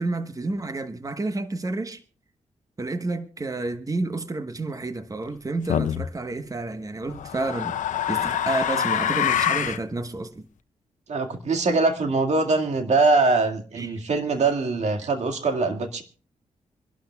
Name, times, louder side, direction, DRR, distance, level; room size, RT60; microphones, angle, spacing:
voice 1, 0.0-2.0 2.8-7.8 8.1-10.5 13.7-14.0, right 2 dB, 25° right, 1.1 m, -30 dB
sound 1, 5.7-6.1 7.1-9.8, left 9 dB, 80° left, 0.6 m, -25 dB
voice 2, 11.1-16.0, right 3 dB, 60° right, 2.1 m, -22 dB
26.0 x 12.0 x 2.3 m
cardioid pair, 60°, 13 cm